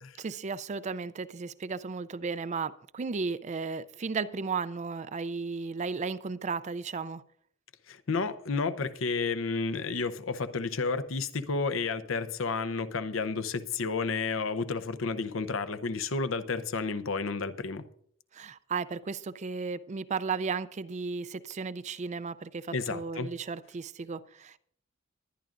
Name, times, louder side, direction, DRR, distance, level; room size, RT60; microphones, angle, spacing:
voice 1, 0.2-7.2 18.3-24.6, right 4 dB, 35° right, 0.4 m, -34 dB
voice 2, 7.9-17.8 22.7-23.3, left 4 dB, 75° left, 0.7 m, -31 dB
21.5 x 10.5 x 2.5 m
head